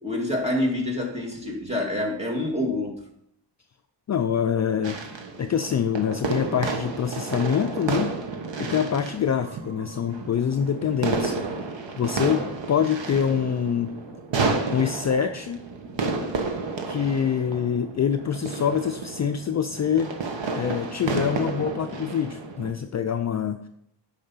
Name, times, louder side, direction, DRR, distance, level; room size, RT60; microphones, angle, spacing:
voice 1, 0.0-2.9, left 1 dB, 15° right, -1 dB, 2.1 m, -27 dB
voice 2, 4.1-5.0 5.4-8.2 8.6-11.7 12.0-13.9 14.7-15.6 16.9-20.1 20.5-23.7, left 8 dB, 40° left, 7 dB, 0.4 m, -25 dB
sound 1, 4.8-22.7, right 4 dB, 85° right, 1.4 m, -31 dB
8.9 x 5.6 x 5.5 m, 0.74 s
wide cardioid pair, 130°, 43 cm